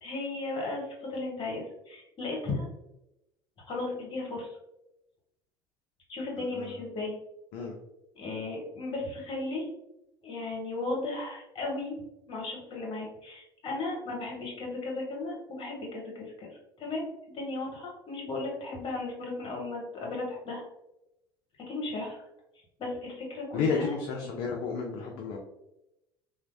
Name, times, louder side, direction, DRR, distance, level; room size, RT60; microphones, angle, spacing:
voice 1, 0.0-2.7 3.7-4.5 6.1-7.2 8.1-9.7 10.2-12.0 12.3-16.5 16.8-17.0 17.3-20.6 21.7-22.2 22.8-24.3, left 2 dB, 40° left, -2 dB, 1.2 m, -35 dB
voice 2, 23.5-25.4, left 5 dB, 60° left, 1 dB, 0.5 m, -31 dB
3.0 x 2.1 x 2.6 m, 0.88 s
hypercardioid pair, 70°, 13 cm